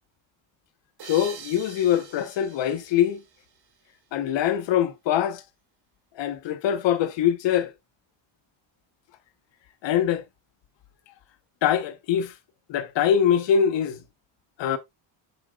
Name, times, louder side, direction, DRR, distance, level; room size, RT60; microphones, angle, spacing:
voice 1, 1.0-3.2 4.1-5.4 6.1-7.7 9.8-10.2 11.6-12.3 12.7-14.0 14.6-14.8, left 9 dB, 65° left, 1.3 m, -23 dB
sound 1, 1.0-4.1, right 7 dB, 55° right, 2.5 m, -45 dB
8.5 x 7.9 x 2.4 m
cardioid pair, 120°, 46 cm